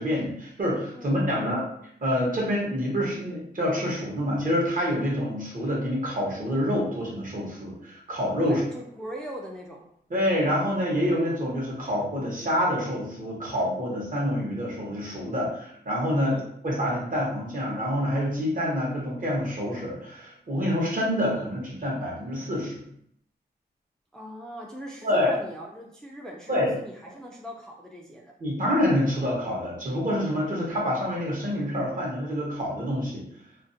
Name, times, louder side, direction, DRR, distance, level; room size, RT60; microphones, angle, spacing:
voice 1, 0.0-1.6 2.0-8.6 10.1-22.8 25.0-25.3 26.5-26.7 28.4-33.2, equal, 50° right, -3 dB, 0.9 m, -27 dB
voice 2, 0.9-1.6 8.4-9.8 16.2-16.5 24.1-28.4, equal, 5° left, -2 dB, 0.3 m, -40 dB
2.4 x 2.0 x 2.6 m, 0.67 s
wide cardioid pair, 90°, 17 cm